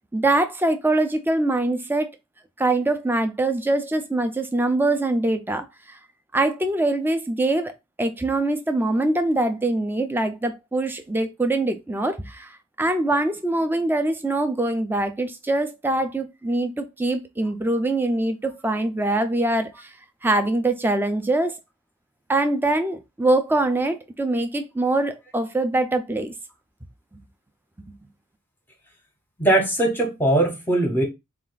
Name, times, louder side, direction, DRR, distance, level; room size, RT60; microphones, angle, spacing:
voice 1, 0.1-2.2 2.6-6.0 6.3-7.7 8.0-19.9 20.2-21.6 22.3-26.3, right 2 dB, 10° right, 0.4 m, -23 dB
voice 2, 29.4-31.0, right 1 dB, 10° left, 0.8 m, -20 dB
4.2 x 2.4 x 3.8 m
head